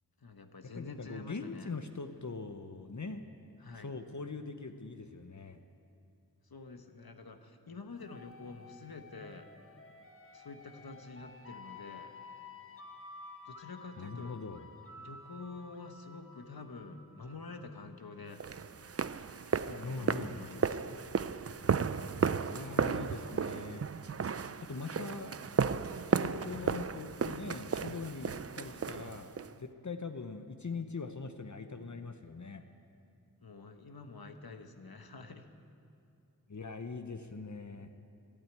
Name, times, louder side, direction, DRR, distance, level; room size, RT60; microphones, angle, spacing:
voice 1, 0.2-1.7 3.6-3.9 6.5-9.5 10.3-12.1 13.4-14.6 14.9-18.4 19.5-21.0 26.1-26.4 33.4-35.5, left 3 dB, 75° left, 7 dB, 1.1 m, -48 dB
voice 2, 0.8-3.2 3.8-5.6 14.0-14.6 19.8-20.4 22.5-23.8 24.7-25.4 26.1-32.6 36.5-37.9, left 4 dB, 50° left, 7 dB, 0.8 m, -42 dB
sound 1, 8.0-17.7, left 3 dB, 35° left, 1.3 m, -52 dB
sound 2, 18.4-29.5, right 6 dB, 40° right, 0.5 m, -34 dB
12.5 x 12.0 x 9.3 m, 2.6 s
wide cardioid pair, 40°, 37 cm